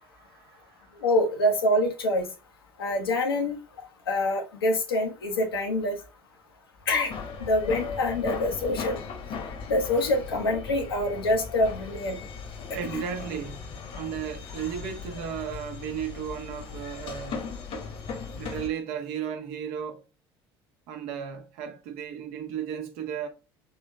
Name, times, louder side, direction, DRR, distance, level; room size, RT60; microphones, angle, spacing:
voice 1, 0.0-1.1 12.7-13.7 13.9-17.5 18.3-20.0 20.9-23.3, right 8 dB, 65° right, 0.9 m, -35 dB
voice 2, 1.0-2.3 2.8-3.6 4.1-6.0 6.9-7.1 7.5-9.0 9.7-12.2 12.9-13.0, left 1 dB, 85° left, 0.9 m, -25 dB
sound 1, 7.1-18.7, left 5 dB, 50° left, 1.1 m, -38 dB
3.8 x 3.1 x 3.1 m
hypercardioid pair, 65°, 12 cm